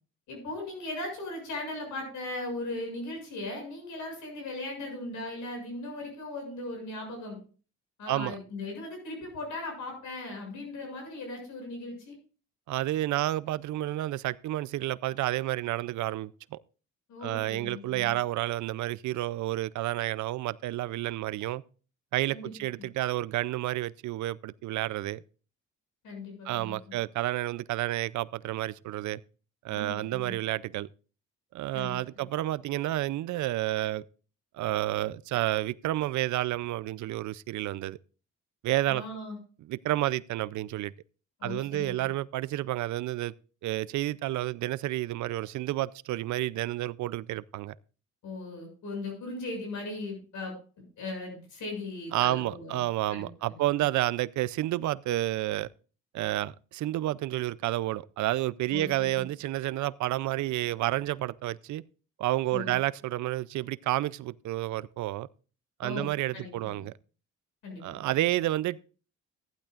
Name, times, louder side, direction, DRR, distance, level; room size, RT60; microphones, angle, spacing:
voice 1, 0.3-7.4 8.0-12.2 17.1-18.2 22.3-22.5 26.0-26.8 29.7-30.3 31.7-32.2 38.9-39.4 41.4-42.1 48.2-50.5 51.0-52.8 53.1-53.8 58.7-59.2 62.5-62.7 65.8-66.1 66.3-66.8 67.6-68.2, left 2 dB, 75° left, 7.2 m, -38 dB
voice 2, 12.7-16.6 17.2-21.6 22.1-25.2 26.4-29.2 29.6-30.9 31.5-34.0 34.5-38.0 38.6-39.0 39.7-40.9 41.4-43.3 43.6-47.7 52.1-55.7 56.1-61.8 62.2-65.3 65.8-66.9 67.8-68.8, right 15 dB, 70° right, 0.5 m, -30 dB
15.0 x 12.0 x 2.5 m
cardioid pair, 90°, 30 cm